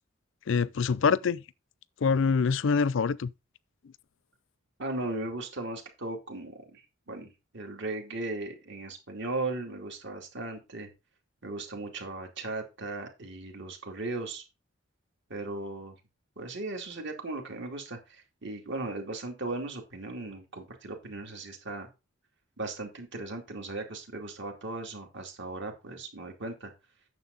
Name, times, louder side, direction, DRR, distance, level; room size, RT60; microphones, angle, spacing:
voice 1, 0.5-1.4 2.0-3.3, left 5 dB, 65° left, 0.4 m, -25 dB
voice 2, 4.8-10.9 11.4-14.4 15.3-16.0 16.4-21.9 22.6-26.7, right 2 dB, 60° right, 2.6 m, -37 dB
9.4 x 6.7 x 4.0 m
head